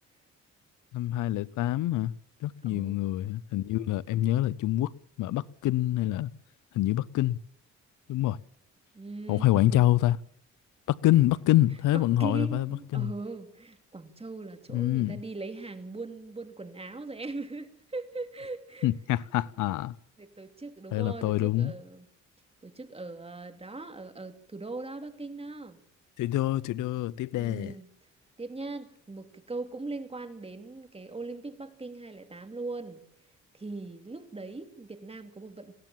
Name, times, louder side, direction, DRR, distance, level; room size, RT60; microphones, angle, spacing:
voice 1, 0.9-2.1 2.4-4.9 5.2-6.3 6.7-7.4 8.1-8.4 9.3-10.2 11.0-13.1 14.7-15.2 18.8-20.0 20.9-21.7 26.2-27.7, left 14 dB, 80° left, 0.8 m, -26 dB
voice 2, 2.6-3.0 8.9-9.8 11.9-18.9 20.2-22.1 22.6-25.8 27.3-27.9 28.4-33.0 33.5-35.7, right 3 dB, 20° right, 2.7 m, -40 dB
21.0 x 16.5 x 7.5 m
cardioid pair, 90°, 30 cm